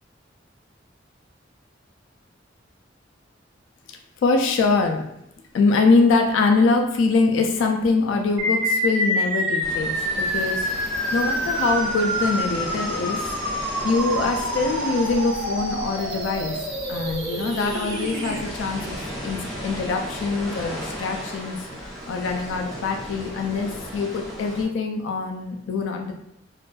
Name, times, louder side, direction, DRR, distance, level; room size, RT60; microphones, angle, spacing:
voice 1, 4.2-5.0 5.5-10.7 11.1-13.3 13.8-16.6 16.9-19.0 19.2-21.6 22.1-26.1, left 3 dB, 85° left, 3 dB, 0.3 m, -23 dB
sound 1, 8.4-18.4, equal, 70° right, 1.1 m, -27 dB
sound 2, 9.6-24.6, equal, ahead, 0.6 m, -35 dB
2.5 x 2.2 x 2.2 m, 0.79 s
head